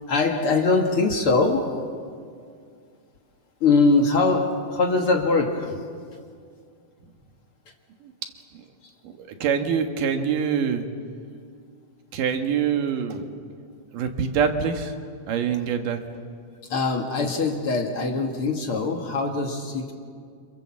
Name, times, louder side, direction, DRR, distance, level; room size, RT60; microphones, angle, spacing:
voice 1, 0.1-1.9 3.6-5.8 16.7-19.9, left 3 dB, 50° left, 3 dB, 2.4 m, -22 dB
voice 2, 9.0-10.9 12.1-13.3 13.9-14.9 15.3-16.2, right 7 dB, 85° right, 5 dB, 3.2 m, -25 dB
28.5 x 27.0 x 7.6 m, 2.1 s
omnidirectional pair, 3.7 m